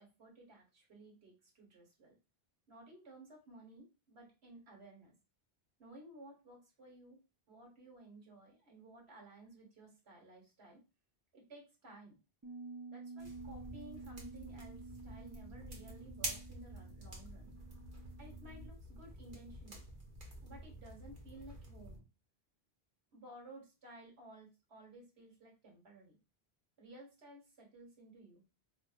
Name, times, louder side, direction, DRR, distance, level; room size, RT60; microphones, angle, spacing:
voice 1, 0.0-2.2 2.7-5.1 5.8-7.2 7.5-10.8 11.3-12.2 12.9-17.5 18.2-19.8 20.4-22.0 23.1-26.2 26.8-28.4, right 1 dB, 80° right, -1 dB, 1.6 m, -56 dB
Bass guitar, 12.4-18.7, right 3 dB, 25° right, 0.6 m, -51 dB
sound 1, 13.2-22.0, right 1 dB, 50° right, 1.2 m, -48 dB
4.7 x 2.6 x 2.4 m, 0.29 s
omnidirectional pair, 1.1 m